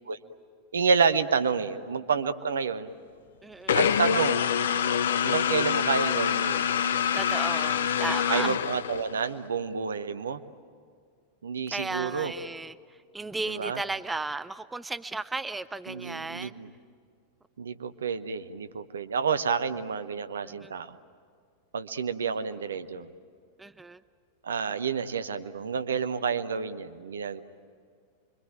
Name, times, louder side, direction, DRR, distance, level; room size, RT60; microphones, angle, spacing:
voice 1, 0.7-2.9 3.7-4.4 5.2-6.7 8.3-10.4 11.4-12.3 13.5-13.8 15.9-16.7 17.6-21.0 21.7-23.1 24.4-27.4, right 6 dB, 70° right, 10 dB, 1.0 m, -29 dB
voice 2, 3.4-3.8 7.1-8.6 11.7-12.7 13.1-16.5 20.4-20.7 23.6-24.0, right 3 dB, 10° right, 13 dB, 0.6 m, -34 dB
sound 1, 3.7-9.3, left 8 dB, 60° left, 0.6 m, -26 dB
26.0 x 24.0 x 9.0 m, 2.1 s
figure-of-eight pair, 90°, 0 cm